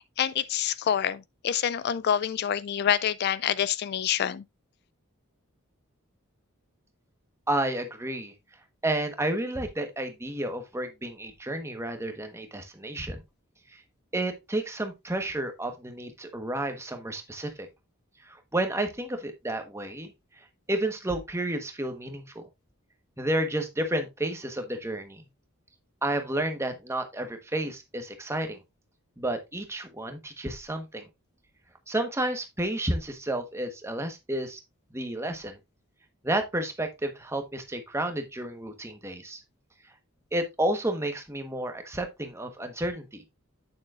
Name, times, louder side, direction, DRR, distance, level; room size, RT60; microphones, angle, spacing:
voice 1, 0.2-4.4, left 9 dB, 50° left, 0.3 m, -27 dB
voice 2, 7.5-8.3 8.8-13.2 14.1-17.7 18.3-20.1 20.7-22.5 23.2-25.2 26.0-28.6 29.2-31.1 31.9-34.6 34.9-35.6 36.2-39.4 40.3-43.2, right 1 dB, 10° right, 1.2 m, -31 dB
8.8 x 7.1 x 2.4 m
head